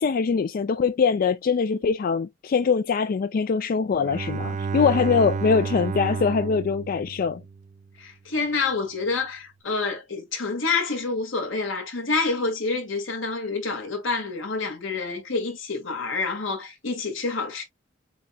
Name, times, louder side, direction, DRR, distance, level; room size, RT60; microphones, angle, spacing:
voice 1, 0.0-7.4, left 5 dB, 50° left, 0.3 m, -23 dB
Bowed string instrument, 3.9-7.7, right 5 dB, 40° right, 0.4 m, -31 dB
voice 2, 8.0-17.6, left 4 dB, 90° left, 1.9 m, -28 dB
7.4 x 2.7 x 2.3 m
head